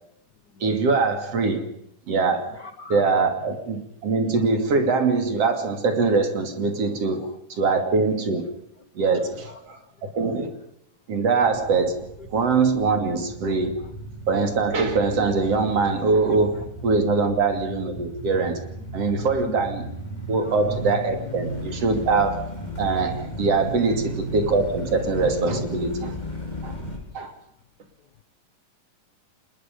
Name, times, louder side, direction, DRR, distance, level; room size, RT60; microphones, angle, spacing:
voice 1, 0.6-1.7 2.1-2.5 2.9-7.3 7.6-8.5 9.0-10.6 11.1-13.7 14.3-18.6 18.9-19.8 20.3-22.5 22.8-26.2 26.6-26.8 27.1-27.3, right 4 dB, 50° right, 3.5 m, -23 dB
voice 2, 2.5-3.3 7.2-7.3 9.2-9.5 19.1-19.6 20.4-20.5 23.8-23.9, left 4 dB, 80° left, 0.9 m, -41 dB
sound 1, 11.4-27.0, equal, 10° left, 4.7 m, -35 dB
26.5 x 21.0 x 5.3 m
omnidirectional pair, 3.8 m